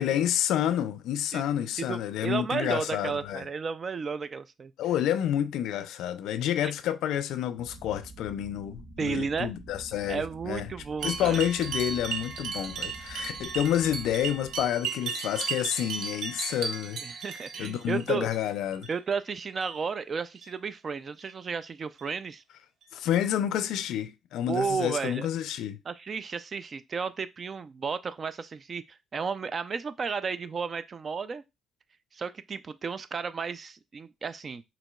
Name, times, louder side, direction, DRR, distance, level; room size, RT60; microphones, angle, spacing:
voice 1, 0.0-3.4 4.8-10.7 11.0-17.0 17.6-18.9 22.9-25.8, left 11 dB, 85° left, 0.4 m, -29 dB
voice 2, 1.8-4.7 6.6-6.7 9.0-9.5 10.1-11.4 17.0-18.3 18.9-22.4 24.5-25.3 25.9-31.4 32.1-34.6, right 5 dB, 45° right, 0.4 m, -33 dB
sound 1, 7.6-14.6, right 2 dB, 65° right, 1.2 m, -47 dB
sound 2, 11.0-18.4 18.7-19.2 19.5-19.8 20.4-20.5 21.2-21.3 22.0-22.1 22.8-22.9, right 6 dB, 85° right, 0.6 m, -35 dB
5.0 x 3.1 x 2.3 m
cardioid pair, 90°, 0 cm